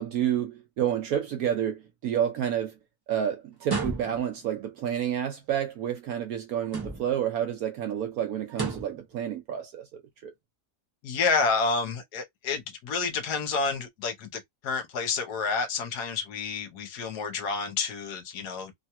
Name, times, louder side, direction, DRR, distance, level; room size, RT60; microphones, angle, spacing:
voice 1, 0.0-2.7 3.1-9.9 10.2-10.3, right 10 dB, 70° right, 0.9 m, -29 dB
sound 1, 3.6-4.4 6.6-7.3 8.5-9.0, right 4 dB, 25° right, 0.4 m, -33 dB
voice 2, 11.0-18.7, left 4 dB, 70° left, 1.2 m, -29 dB
3.1 x 2.2 x 2.8 m
omnidirectional pair, 1.9 m